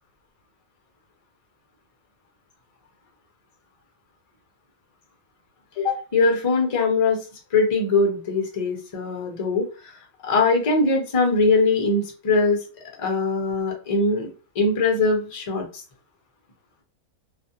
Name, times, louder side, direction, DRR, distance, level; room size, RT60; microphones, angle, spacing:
voice 1, 5.8-7.2 7.5-10.0 10.2-12.6 13.0-14.3 14.5-15.7, left 3 dB, 40° left, 1 dB, 0.5 m, -21 dB
2.4 x 2.3 x 2.7 m, 0.34 s
omnidirectional pair, 1.5 m